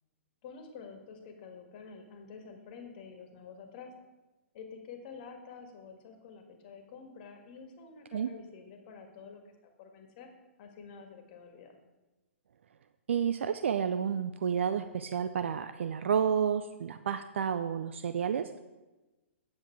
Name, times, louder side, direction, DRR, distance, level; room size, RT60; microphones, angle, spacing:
voice 1, 0.4-3.9 4.5-9.5 9.8-10.3 10.6-11.8, left 5 dB, 45° left, 4 dB, 1.7 m, -49 dB
voice 2, 13.1-18.6, right 8 dB, 65° right, 10 dB, 0.4 m, -30 dB
9.5 x 7.3 x 4.5 m, 1.1 s
hypercardioid pair, 120°, 7 cm